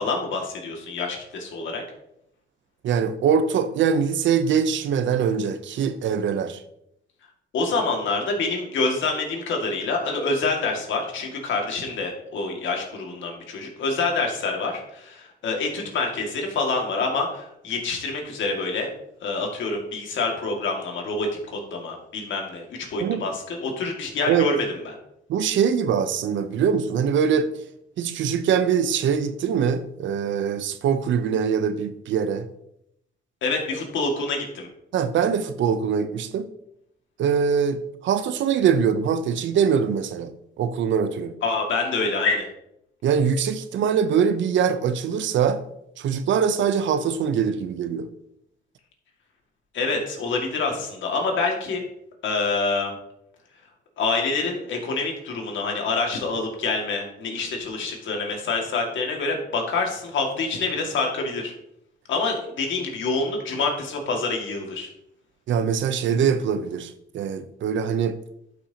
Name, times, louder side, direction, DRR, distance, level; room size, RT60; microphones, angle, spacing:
voice 1, 0.0-1.8 7.5-18.9 19.2-25.0 33.4-34.7 41.4-42.5 49.7-51.8 52.2-52.9 54.0-61.5 62.1-64.9, left 3 dB, 75° left, 2.1 m, -26 dB
voice 2, 2.8-6.6 23.0-23.2 24.3-24.5 25.3-27.5 28.0-32.5 34.9-36.5 37.2-40.3 40.6-41.3 43.0-45.6 46.0-48.1 65.5-68.2, right 7 dB, 70° right, 0.7 m, -23 dB
11.5 x 5.9 x 2.9 m
cardioid pair, 90°, 20 cm